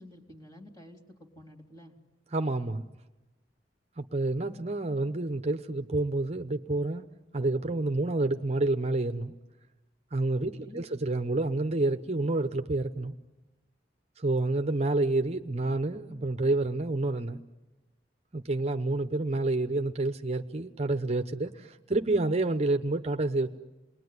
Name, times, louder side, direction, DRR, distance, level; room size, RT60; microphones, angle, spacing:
voice 1, 0.0-2.0 10.4-10.8, left 1 dB, 20° left, 3 dB, 3.5 m, -50 dB
voice 2, 2.3-2.8 4.0-9.4 10.1-13.1 14.2-17.4 18.3-23.5, right 2 dB, 35° right, 7 dB, 0.8 m, -29 dB
28.5 x 21.0 x 9.6 m, 1.1 s
head